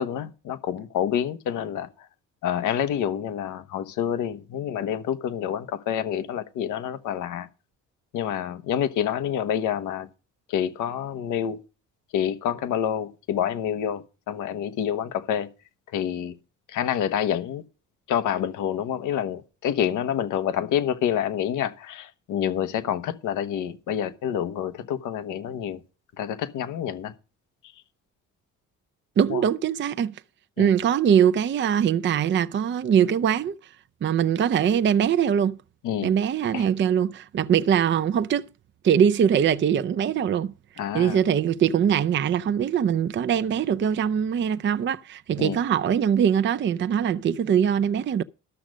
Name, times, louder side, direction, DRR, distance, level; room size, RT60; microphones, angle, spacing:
voice 1, 0.0-1.9 2.4-7.5 8.1-10.1 10.5-11.6 12.1-15.5 15.9-16.3 16.7-17.6 18.1-25.8 26.2-27.1 29.3-29.4 30.6-30.7 35.8-36.1 36.5-36.6 40.8-41.2 45.4-45.6, left 9 dB, 90° left, 1.1 m, -27 dB
voice 2, 29.2-30.2 30.6-33.6 34.0-35.6 36.0-38.5 38.8-40.5 40.9-48.2, right 8 dB, 40° right, 0.5 m, -22 dB
12.5 x 6.4 x 6.1 m
cardioid pair, 90°, 30 cm